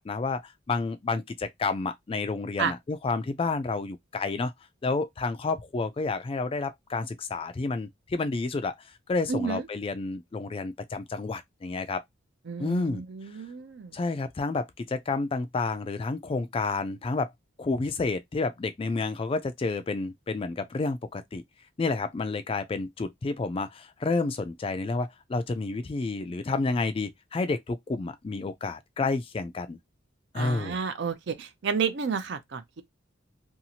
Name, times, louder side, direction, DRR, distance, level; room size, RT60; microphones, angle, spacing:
voice 1, 0.0-4.5 4.8-12.0 12.6-13.0 13.9-17.3 17.6-21.4 21.8-29.8 30.3-30.8, left 3 dB, 25° left, 0.3 m, -30 dB
voice 2, 9.3-9.6 12.5-13.9 30.3-32.8, right 6 dB, 60° right, 0.5 m, -31 dB
2.7 x 2.4 x 2.8 m
head